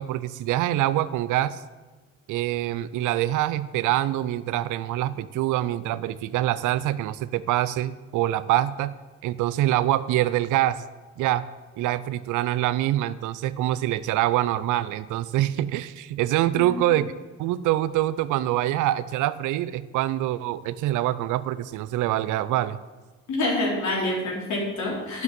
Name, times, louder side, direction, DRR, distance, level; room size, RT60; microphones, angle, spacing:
voice 1, 0.0-1.6 2.3-8.9 9.2-10.8 11.2-11.4 11.8-17.1 17.4-22.8, right 14 dB, 75° right, 16 dB, 0.5 m, -25 dB
voice 2, 23.3-25.2, left 2 dB, 65° left, -2 dB, 3.4 m, -27 dB
9.5 x 5.9 x 7.6 m, 1.3 s
supercardioid pair, 65°, 31 cm